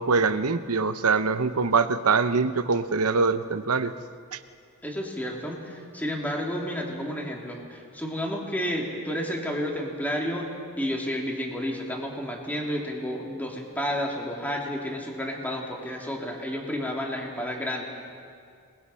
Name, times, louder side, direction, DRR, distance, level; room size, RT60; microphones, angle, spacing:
voice 1, 0.0-3.9 4.3-4.4, right 4 dB, 85° right, 11 dB, 0.9 m, -23 dB
voice 2, 4.8-17.8, equal, 10° left, -1 dB, 2.8 m, -31 dB
27.5 x 20.5 x 5.7 m, 2.3 s
head